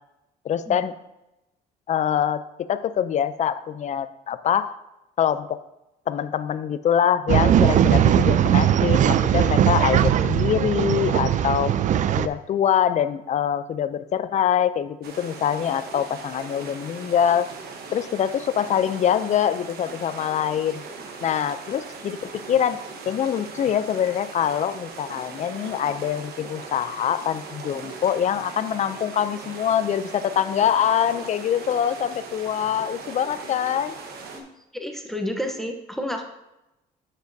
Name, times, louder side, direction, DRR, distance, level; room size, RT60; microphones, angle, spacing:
voice 1, 0.4-0.9 1.9-4.7 5.2-5.6 6.1-11.7 12.2-17.5 17.9-20.8 21.2-34.0, left 9 dB, 45° left, 13 dB, 0.5 m, -24 dB
Male speech man speaking / Chatter / Rattle, 7.3-12.3, right 10 dB, 45° right, 0.4 m, -19 dB
sound 1, 15.0-34.4, right 4 dB, 70° right, 1.3 m, -39 dB
voice 2, 34.7-36.2, left 1 dB, ahead, 4 dB, 0.9 m, -30 dB
10.5 x 7.3 x 2.7 m, 0.94 s
cardioid pair, 110°, 17 cm